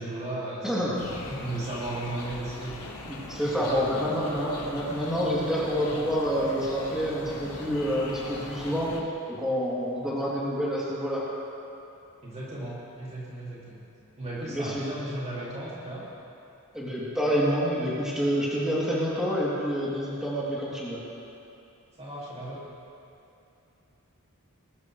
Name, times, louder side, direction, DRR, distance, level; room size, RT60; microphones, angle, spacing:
voice 1, 0.0-2.8 3.4-4.1 12.2-13.8 14.2-16.1 22.0-22.6, right 1 dB, 30° right, -7 dB, 2.4 m, -35 dB
voice 2, 0.6-1.0 3.1-8.9 9.3-11.2 14.5-14.8 16.7-21.0, equal, 5° right, -8 dB, 2.8 m, -28 dB
sound 1, 0.9-9.0, left 2 dB, 90° left, 1.6 m, -40 dB
20.5 x 13.0 x 3.2 m, 2.8 s
head